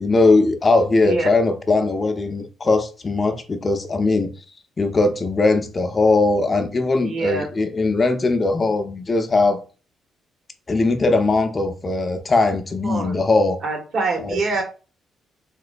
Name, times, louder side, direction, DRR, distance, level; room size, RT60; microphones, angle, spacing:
voice 1, 0.0-4.3 4.8-9.6 10.7-13.6 14.2-14.4, left 3 dB, 30° left, 0.5 m, -19 dB
voice 2, 7.0-7.5 12.8-13.2 13.6-14.6, right 3 dB, 60° right, 1.1 m, -25 dB
3.0 x 2.9 x 2.5 m
cardioid pair, 90°, 0 cm